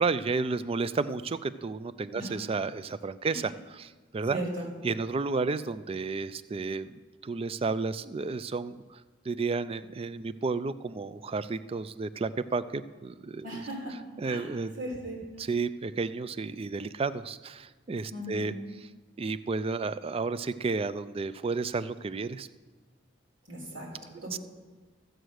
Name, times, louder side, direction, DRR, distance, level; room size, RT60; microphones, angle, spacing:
voice 1, 0.0-4.4 4.8-9.0 9.3-13.5 14.2-14.7 15.4-18.5 19.2-22.5 24.3-24.4, right 4 dB, 30° right, 15 dB, 0.4 m, -32 dB
voice 2, 4.3-4.7 13.4-13.9 14.2-14.5 14.8-15.2 18.1-18.5 23.5-24.4, right 1 dB, 90° right, -3 dB, 3.9 m, -37 dB
14.5 x 7.8 x 6.4 m, 1.3 s
head